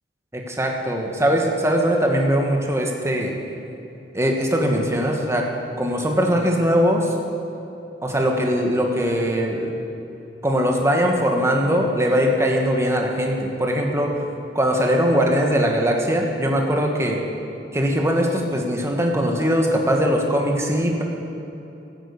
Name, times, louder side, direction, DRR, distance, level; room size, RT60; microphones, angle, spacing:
voice 1, 0.3-3.3 4.1-5.5 5.8-7.1 8.0-9.7 10.4-14.2 14.5-17.2 17.7-21.0, equal, 15° right, 1 dB, 1.6 m, -21 dB
12.5 x 10.5 x 8.4 m, 2.9 s
head